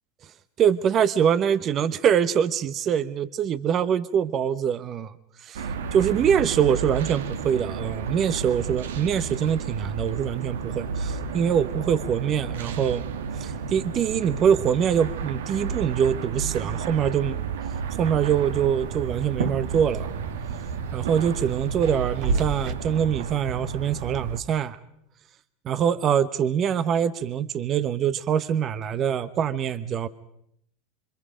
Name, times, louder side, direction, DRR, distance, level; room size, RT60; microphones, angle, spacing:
voice 1, 0.6-5.1 5.4-13.0 13.4-17.4 17.9-20.1 20.9-24.8 25.6-30.1, right 8 dB, 40° right, 15 dB, 0.9 m, -24 dB
sound 1, 5.6-24.4, right 6 dB, 80° right, 1.3 m, -32 dB
sound 2, 17.7-22.7, right 4 dB, 60° right, 2.4 m, -34 dB
27.5 x 25.5 x 5.1 m, 0.74 s
hypercardioid pair, 100°, 0 cm